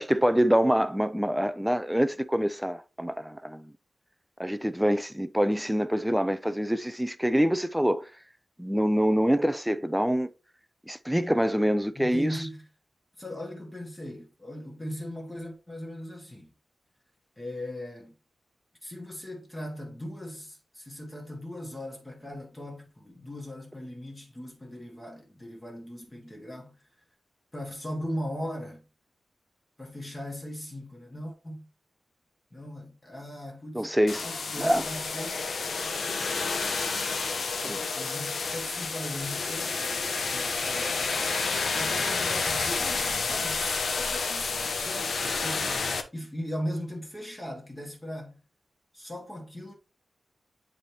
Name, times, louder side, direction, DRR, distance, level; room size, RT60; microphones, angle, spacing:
voice 1, 0.0-3.7 4.4-8.1 8.6-10.3 10.9-12.4 33.7-34.3 34.6-34.8 37.6-37.8, equal, 5° right, 0.4 m, -25 dB
voice 2, 11.9-12.6 13.2-16.5 17.4-18.1 18.8-26.8 27.5-28.8 29.8-31.7 32.5-33.9 34.2-35.4 37.6-40.0 40.3-41.0 41.7-48.4 48.9-49.7, equal, 15° left, 1.5 m, -38 dB
sound 1, 34.1-46.0, left 4 dB, 65° left, 0.9 m, -30 dB
9.7 x 3.4 x 2.9 m
wide cardioid pair, 170°, 0 cm